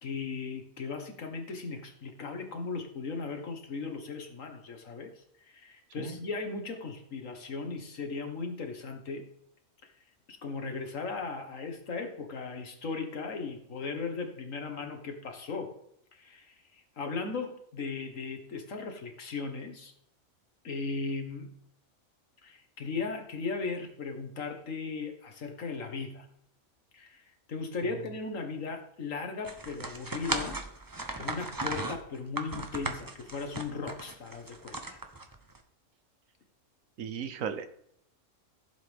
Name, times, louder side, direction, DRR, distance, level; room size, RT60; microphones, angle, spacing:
voice 1, 0.0-9.3 9.8-9.9 10.3-15.7 16.1-19.9 20.6-21.5 22.4-26.3 26.9-30.6 31.2-35.0, left 4 dB, 70° left, 5 dB, 1.8 m, -37 dB
sound 1, 29.4-35.6, right 2 dB, 20° right, 0.7 m, -37 dB
voice 2, 37.0-37.7, right 7 dB, 75° right, 10 dB, 1.2 m, -35 dB
15.0 x 7.4 x 3.5 m, 0.72 s
omnidirectional pair, 1.4 m